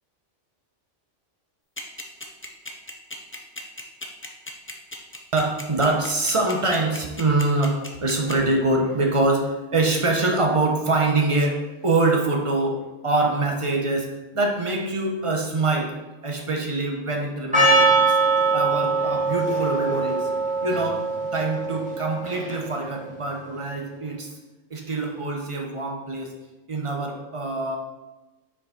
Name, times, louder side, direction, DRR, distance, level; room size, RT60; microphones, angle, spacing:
sound 1, 1.8-8.3, left 2 dB, 15° left, 0.4 m, -35 dB
voice 1, 5.3-14.1 14.3-15.9 16.2-18.2 18.5-20.3 20.6-21.0 21.3-24.3 24.7-26.3 26.7-27.8, right 2 dB, 30° right, 1 dB, 0.9 m, -24 dB
Percussion, 17.5-22.8, right 3 dB, 5° right, 1.3 m, -22 dB
6.2 x 4.7 x 4.3 m, 1.1 s
omnidirectional pair, 1.2 m